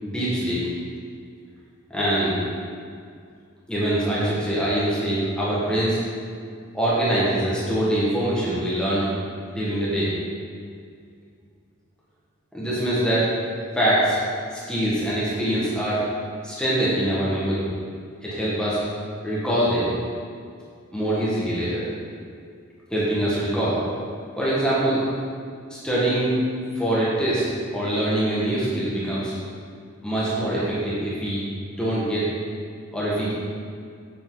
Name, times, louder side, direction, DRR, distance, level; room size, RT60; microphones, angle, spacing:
voice 1, 0.0-0.7 1.9-2.3 3.7-6.0 6.7-9.1 9.5-10.1 12.5-13.3 13.7-14.2 14.5-16.0 16.4-17.7 18.2-18.8 19.2-19.9 20.9-21.9 22.9-23.8 24.4-25.0 25.7-26.3 26.7-27.4 27.7-29.3 30.0-31.4 31.8-32.3 32.9-33.3, right 1 dB, 5° left, -9 dB, 1.6 m, -23 dB
7.5 x 6.8 x 4.0 m, 2.2 s
head